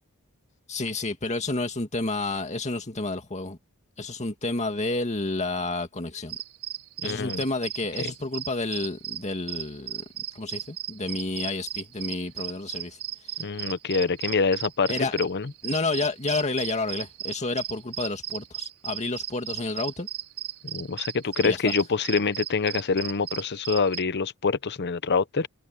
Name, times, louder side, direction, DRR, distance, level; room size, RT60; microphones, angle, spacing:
voice 1, 0.7-3.6 4.0-6.4 7.0-10.0 10.3-13.0 14.9-15.2 15.6-20.1 21.4-21.7, left 2 dB, 30° left, 2.2 m, -30 dB
sound 1, 6.3-24.0, right 12 dB, 75° right, 4.7 m, -36 dB
voice 2, 7.0-7.4 8.0-8.1 13.4-15.5 20.6-25.5, left 4 dB, 50° left, 0.8 m, -26 dB
head